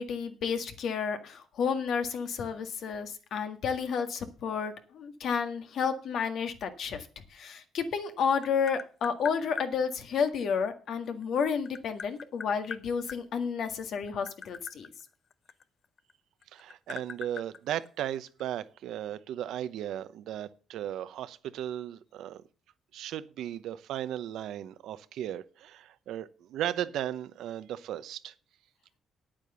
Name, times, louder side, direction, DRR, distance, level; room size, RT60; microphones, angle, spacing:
voice 1, 0.0-14.9, left 6 dB, 70° left, 7 dB, 1.8 m, -31 dB
Tap, 7.8-9.7 11.0-13.2 13.9-16.1 16.4-18.4, left 6 dB, 50° left, 0.6 m, -42 dB
voice 2, 16.5-22.4 22.9-28.3, right 11 dB, 80° right, 13 dB, 0.8 m, -36 dB
9.3 x 8.8 x 6.9 m, 0.38 s
cardioid pair, 90°, 0 cm